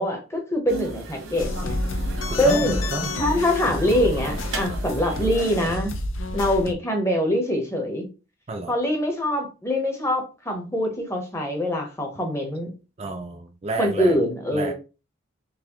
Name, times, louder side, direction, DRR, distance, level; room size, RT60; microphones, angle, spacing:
voice 1, 0.0-1.8 2.4-2.8 3.2-5.9 6.3-8.1 8.7-12.7 13.8-14.7, left 1 dB, 15° left, 0.8 m, -24 dB
sound 1, 0.7-5.8, right 3 dB, 90° right, 1.3 m, -36 dB
sound 2, 1.4-6.7, left 2 dB, 75° left, 0.5 m, -29 dB
voice 2, 2.3-3.1 8.5-8.7 13.0-14.2 14.5-14.7, right 2 dB, 30° right, 0.4 m, -30 dB
4.0 x 3.2 x 2.9 m
head